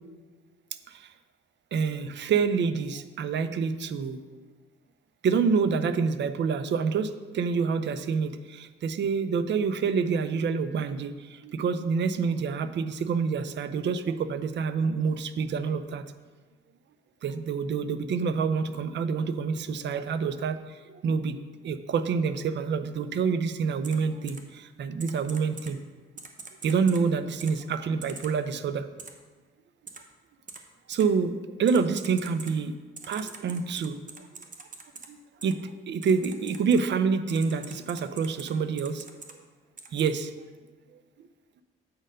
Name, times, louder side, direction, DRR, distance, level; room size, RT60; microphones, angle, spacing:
voice 1, 1.7-4.2 5.2-16.0 17.2-20.6 21.0-25.8 26.6-28.9 30.9-32.7 33.1-34.3 35.1-35.2 35.4-39.0 39.9-40.3, right 5 dB, 60° right, 12 dB, 0.6 m, -27 dB
Typing, 23.8-24.0 24.3-24.4 25.0-25.7 26.2-27.0 27.4-27.5 28.0-28.3 29.0-29.1 29.9-30.0 30.5-30.6 30.9-31.0 31.7-32.5 33.0-35.1 35.4-35.5 36.0-36.8 37.3-38.5 38.8-39.3 39.8-40.1, right 4 dB, 40° right, 0.9 m, -43 dB
7.8 x 4.2 x 5.1 m, 1.3 s
cardioid pair, 75°, 21 cm